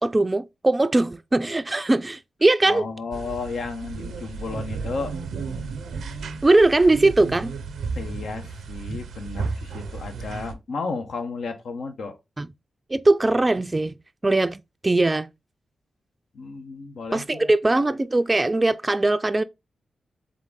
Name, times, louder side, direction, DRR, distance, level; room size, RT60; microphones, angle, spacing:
voice 1, 0.0-2.8 6.4-7.5 12.4-12.5 12.9-13.9 14.2-15.3 17.1-19.4, right 2 dB, 30° right, 0.3 m, -20 dB
voice 2, 2.6-5.2 8.0-12.2 16.3-17.5, left 4 dB, 75° left, 0.8 m, -33 dB
sound 1, 3.1-10.5, right 4 dB, 85° right, 0.5 m, -33 dB
3.7 x 3.5 x 3.6 m
cardioid pair, 50°, 0 cm